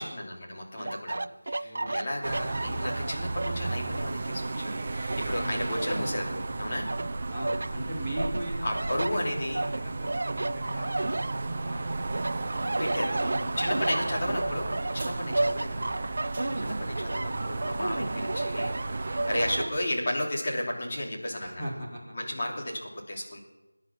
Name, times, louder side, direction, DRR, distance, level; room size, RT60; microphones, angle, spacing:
voice 1, 0.0-6.9 8.6-9.6 12.8-13.1 13.6-18.8 19.0-21.6 22.1-23.4, left 1 dB, 25° left, -2 dB, 2.9 m, -33 dB
sound 1, 0.8-4.2 4.7-6.5 6.9-7.7 8.2-11.8 12.1-19.7, right 2 dB, 45° right, 0.4 m, -33 dB
sound 2, 2.2-19.6, right 3 dB, 25° right, 1.0 m, -34 dB
voice 2, 7.3-9.2 9.5-10.5 10.7-12.1 12.7-13.9 15.2-15.6 16.4-16.9 21.4-22.1, right 1 dB, ahead, -14 dB, 3.2 m, -40 dB
21.5 x 10.0 x 6.1 m, 1.1 s
figure-of-eight pair, 175°, 0 cm